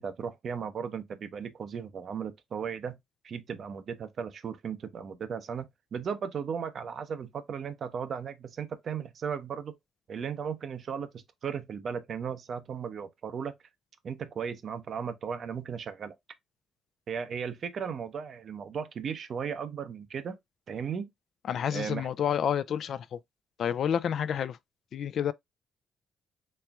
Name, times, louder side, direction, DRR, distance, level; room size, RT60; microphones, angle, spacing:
voice 1, 0.0-3.0 3.2-9.8 10.1-13.5 14.0-16.1 17.1-20.4 20.7-21.1 21.7-22.1, right 7 dB, 55° right, 0.8 m, -36 dB
voice 2, 21.5-23.2 23.6-24.6 24.9-25.3, left 8 dB, 65° left, 0.4 m, -29 dB
4.3 x 3.4 x 2.3 m
cardioid pair, 90°, 0 cm